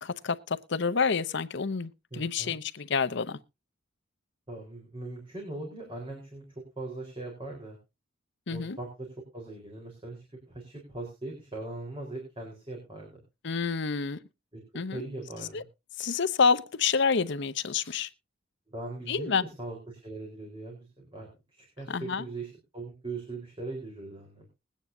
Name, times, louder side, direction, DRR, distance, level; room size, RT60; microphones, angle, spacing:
voice 1, 0.0-3.4 8.5-8.8 13.4-14.2 14.7-15.0 15.4-15.6 16.0-18.1 19.1-19.4 21.9-22.2, left 5 dB, 60° left, 0.7 m, -28 dB
voice 2, 2.1-2.6 4.5-6.4 6.8-7.8 8.5-9.1 9.3-13.2 14.7-15.7 18.7-24.4, right 2 dB, 25° right, 4.1 m, -40 dB
21.0 x 9.2 x 2.7 m
head